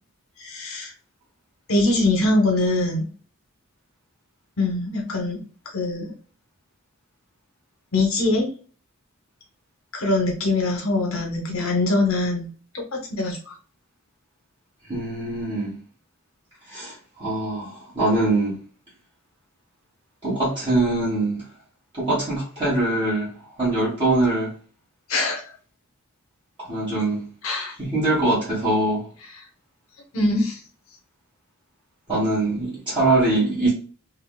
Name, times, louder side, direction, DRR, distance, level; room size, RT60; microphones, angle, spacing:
voice 1, 0.4-0.9 1.7-3.1 4.6-6.1 7.9-8.5 9.9-12.5 12.7-13.5 25.1-25.5 27.4-27.7 29.3-29.4 30.1-30.6, left 2 dB, 70° left, 1.0 m, -23 dB
voice 2, 14.9-15.7 16.7-18.5 20.2-21.4 21.9-23.3 23.6-24.5 26.6-27.2 27.8-29.0 32.1-33.7, right 2 dB, 25° right, 1.3 m, -23 dB
3.4 x 2.7 x 2.2 m
head